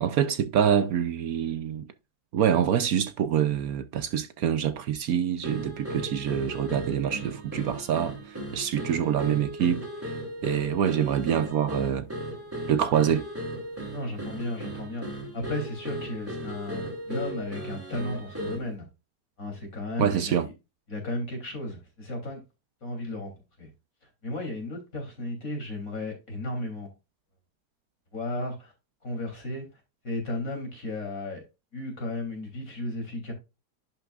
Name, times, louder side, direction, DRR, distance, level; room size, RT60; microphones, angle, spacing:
voice 1, 0.0-1.9 2.3-9.9 10.4-12.1 12.7-13.3 20.0-20.5, right 9 dB, 65° right, 1.1 m, -26 dB
sound 1, 5.4-18.7, right 1 dB, 10° right, 3.1 m, -36 dB
voice 2, 13.9-18.9 19.4-20.5 20.9-22.4 22.8-23.3 23.6-23.7 24.2-26.9 28.1-28.7 29.0-29.7 30.0-31.4 31.7-33.3, left 2 dB, 55° left, 3.7 m, -34 dB
11.0 x 5.9 x 2.4 m
omnidirectional pair, 1.8 m